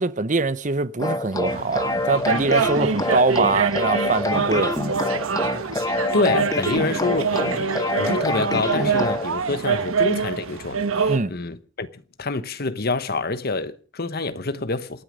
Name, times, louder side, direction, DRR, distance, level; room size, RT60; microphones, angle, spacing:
voice 1, 0.0-4.8 11.1-11.3, right 3 dB, 35° right, 0.8 m, -23 dB
sound 1, 1.0-9.3, left 2 dB, 15° left, 0.9 m, -27 dB
sound 2, 1.5-11.2, right 5 dB, 85° right, 1.2 m, -25 dB
voice 2, 6.1-15.0, left 3 dB, 50° left, 1.1 m, -27 dB
28.0 x 9.5 x 5.2 m
head